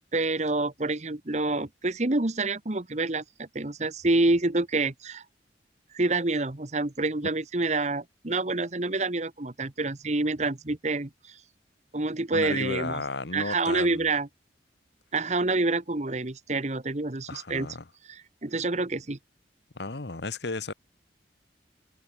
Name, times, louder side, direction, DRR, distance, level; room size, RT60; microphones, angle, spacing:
voice 1, 0.1-5.2 5.9-11.4 11.9-13.0 13.3-14.3 15.1-17.7 18.1-19.2, right 2 dB, 40° right, 1.2 m, -27 dB
voice 2, 12.3-14.1 17.3-17.9 19.7-20.7, left 3 dB, 70° left, 1.3 m, -34 dB
head